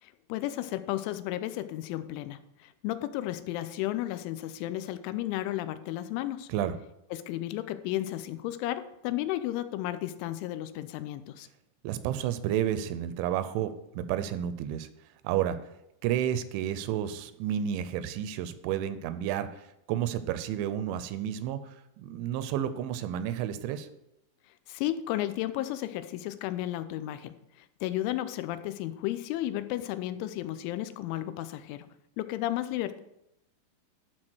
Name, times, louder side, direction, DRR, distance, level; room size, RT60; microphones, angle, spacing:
voice 1, 0.0-6.5 7.1-11.5 24.7-27.4 27.8-31.9 32.2-33.0, left 14 dB, 85° left, 12 dB, 3.1 m, -33 dB
voice 2, 11.8-14.9 15.2-15.6 16.0-23.9, right 10 dB, 85° right, 12 dB, 2.9 m, -31 dB
12.0 x 4.3 x 6.2 m, 0.82 s
omnidirectional pair, 5.4 m